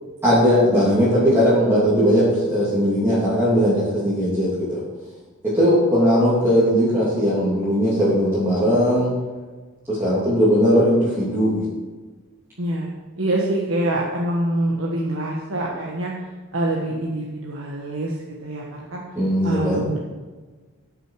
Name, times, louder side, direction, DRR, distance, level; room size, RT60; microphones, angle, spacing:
voice 1, 0.2-4.8 5.4-9.1 9.9-11.6 19.2-19.8, equal, 10° right, -11 dB, 2.9 m, -18 dB
voice 2, 12.6-12.9 13.2-19.0 19.4-20.0, right 1 dB, 65° right, -3 dB, 1.4 m, -25 dB
14.0 x 6.7 x 4.8 m, 1.3 s
head